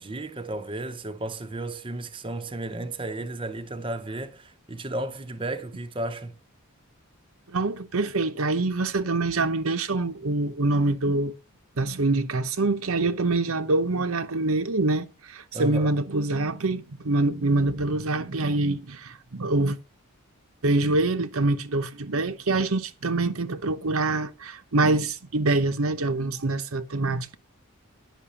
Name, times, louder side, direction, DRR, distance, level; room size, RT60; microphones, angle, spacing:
voice 1, 0.0-6.3 15.5-15.9, right 2 dB, 20° right, 0.7 m, -33 dB
voice 2, 7.5-11.4 11.8-19.8 20.6-27.4, right 2 dB, 70° right, 0.9 m, -25 dB
10.5 x 6.0 x 7.0 m
head